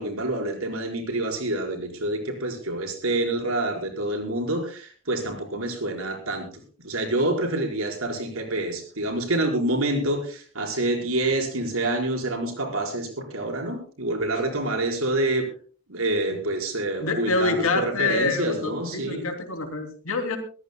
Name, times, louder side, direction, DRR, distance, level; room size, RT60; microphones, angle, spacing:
voice 1, 0.0-6.5 6.8-15.4 15.9-19.2, right 2 dB, 80° right, 3 dB, 4.7 m, -27 dB
voice 2, 17.0-20.4, left 3 dB, 80° left, 6 dB, 2.9 m, -26 dB
24.0 x 14.5 x 2.3 m, 0.40 s
head